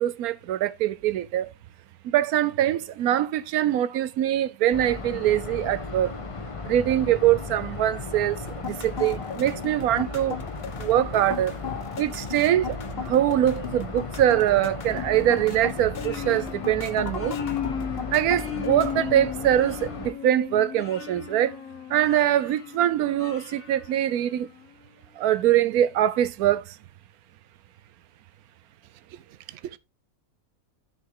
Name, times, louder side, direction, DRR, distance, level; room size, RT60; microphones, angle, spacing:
voice 1, 0.0-1.5 2.0-6.1 6.7-10.4 10.8-11.5 12.0-17.4 18.1-21.6 21.9-24.5 25.2-26.8, right 12 dB, 85° right, 1.2 m, -23 dB
sound 1, 4.7-20.1, left 3 dB, 30° left, 0.7 m, -36 dB
sound 2, 8.5-19.1, left 7 dB, 45° left, 1.1 m, -36 dB
sound 3, 14.9-24.7, left 8 dB, 70° left, 1.4 m, -37 dB
voice 2, 29.1-29.8, right 11 dB, 65° right, 0.9 m, -41 dB
9.9 x 5.6 x 3.7 m
omnidirectional pair, 1.5 m